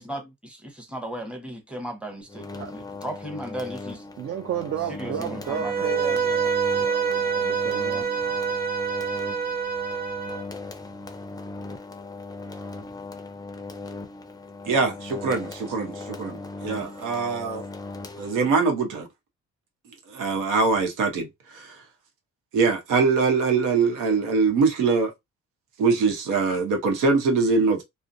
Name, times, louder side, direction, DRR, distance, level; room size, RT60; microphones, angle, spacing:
voice 1, 0.0-4.0 4.9-5.9, right 1 dB, 5° right, 0.8 m, -36 dB
sound 1, 2.3-18.8, left 3 dB, 15° left, 0.4 m, -38 dB
voice 2, 4.2-6.5 6.8-8.1, right 9 dB, 50° right, 0.5 m, -32 dB
Bowed string instrument, 5.5-10.4, right 6 dB, 30° right, 1.2 m, -26 dB
voice 3, 14.7-17.6 18.2-19.1 20.1-21.8 22.5-25.1 25.8-27.8, right 4 dB, 90° right, 0.8 m, -23 dB
2.4 x 2.0 x 2.5 m
cardioid pair, 90°, 30 cm